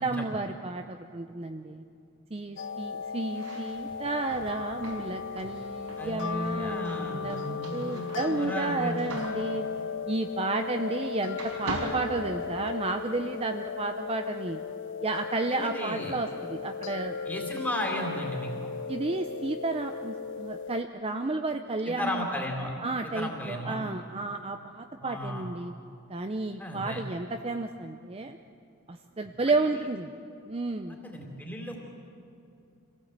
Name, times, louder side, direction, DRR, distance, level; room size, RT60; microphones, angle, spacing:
voice 1, 0.0-1.8 2.3-9.7 10.1-14.6 15.0-17.2 18.9-22.2 22.8-25.7 26.1-28.4 28.9-30.1 30.4-31.0, right 3 dB, 25° right, 6 dB, 0.6 m, -32 dB
sound 1, 2.6-20.8, left 6 dB, 55° left, 0.6 m, -36 dB
sound 2, 3.2-11.1 11.3-13.0, right 2 dB, 85° right, 4.6 m, -42 dB
voice 2, 6.0-9.1 15.5-16.2 17.3-18.7 21.9-22.7 23.1-23.8 25.0-25.5 26.6-27.0 29.5-29.6 31.0-31.8, left 1 dB, 10° left, 0 dB, 3.4 m, -34 dB
26.5 x 17.5 x 8.1 m, 2.6 s
head